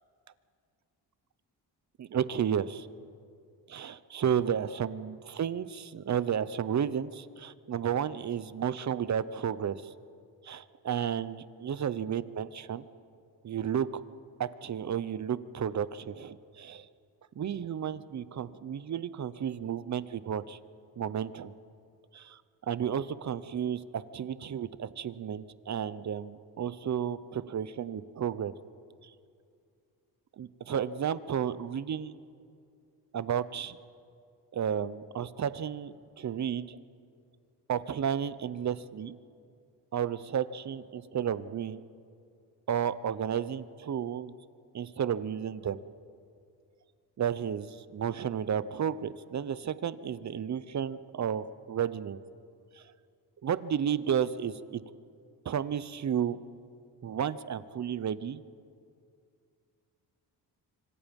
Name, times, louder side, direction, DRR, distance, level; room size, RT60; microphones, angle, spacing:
voice 1, 2.0-2.9 3.7-9.9 10.4-12.8 13.4-14.0 14.4-16.9 17.4-20.6 21.0-21.5 22.1-28.5 29.0-29.1 30.4-32.1 33.1-33.8 34.5-36.8 37.7-39.2 39.9-41.8 42.7-44.3 44.7-45.8 47.2-52.2 52.7-52.8 53.4-54.8 55.4-56.4 57.0-58.4, right 8 dB, 45° right, 15 dB, 0.9 m, -32 dB
25.5 x 25.5 x 5.4 m, 2.3 s
cardioid pair, 105°, 40 cm